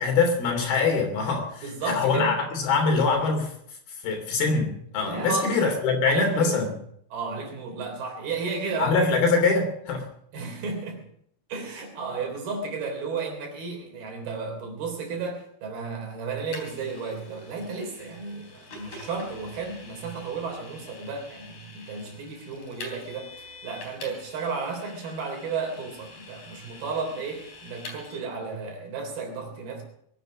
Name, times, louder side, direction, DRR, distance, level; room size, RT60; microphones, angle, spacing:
voice 1, 0.0-3.5 4.0-6.7 8.8-10.1, left 4 dB, 85° left, 4 dB, 5.0 m, -23 dB
voice 2, 1.6-2.3 5.0-5.5 6.1-6.7 7.1-9.0 10.3-11.0 11.5-29.8, right 4 dB, 85° right, 2 dB, 5.6 m, -33 dB
Vehicle, 16.5-28.2, left 3 dB, 55° left, 4.9 m, -46 dB
22.0 x 9.4 x 6.3 m, 0.69 s
omnidirectional pair, 4.3 m